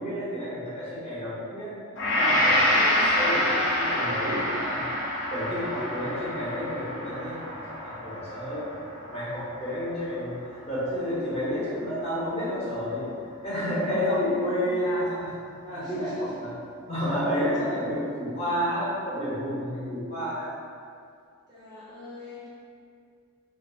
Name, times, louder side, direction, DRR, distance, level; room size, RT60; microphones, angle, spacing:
voice 1, 0.0-1.7 2.2-5.0 5.3-8.8 9.1-13.0 13.4-15.3 15.6-16.5 16.9-20.5, equal, 30° left, -10 dB, 0.7 m, -30 dB
Gong, 2.0-10.3 10.7-10.9, left 1 dB, 55° left, 0.5 m, -27 dB
voice 2, 14.0-14.7 15.7-16.4 21.5-22.5, left 1 dB, 20° right, -10 dB, 0.5 m, -43 dB
2.5 x 2.2 x 2.6 m, 2.4 s
head